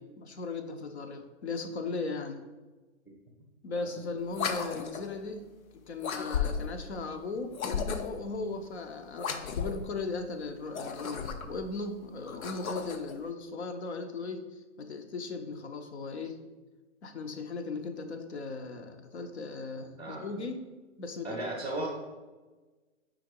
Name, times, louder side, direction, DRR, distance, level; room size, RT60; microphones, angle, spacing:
voice 1, 0.0-2.4 3.6-16.4 17.0-20.6 21.0-21.4, left 3 dB, 55° left, 8 dB, 0.7 m, -37 dB
sound 1, 4.3-5.2 6.0-6.8 7.5-8.3 9.2-9.9 10.6-11.6 12.2-13.1, left 6 dB, 85° left, 0.8 m, -34 dB
voice 2, 21.2-21.9, right 1 dB, 10° left, -6 dB, 0.5 m, -35 dB
4.9 x 3.8 x 5.1 m, 1.3 s
hypercardioid pair, 175°, 40 cm